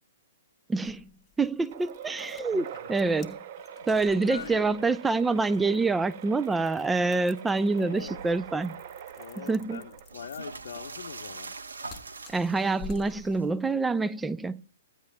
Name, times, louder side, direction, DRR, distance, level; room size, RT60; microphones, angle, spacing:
voice 1, 0.7-1.1 1.4-3.4 3.9-8.8 9.5-9.8 12.3-14.6, right 3 dB, 10° right, 0.4 m, -26 dB
sound 1, 0.8-13.8, left 4 dB, 20° left, 1.1 m, -51 dB
sound 2, 1.7-10.5, right 8 dB, 50° right, 0.6 m, -44 dB
voice 2, 3.7-4.9 7.7-8.2 9.1-11.6, left 7 dB, 65° left, 0.7 m, -43 dB
sound 3, 7.9-13.5, right 4 dB, 85° right, 1.0 m, -44 dB
16.5 x 9.5 x 2.2 m
hypercardioid pair, 130°, 0 cm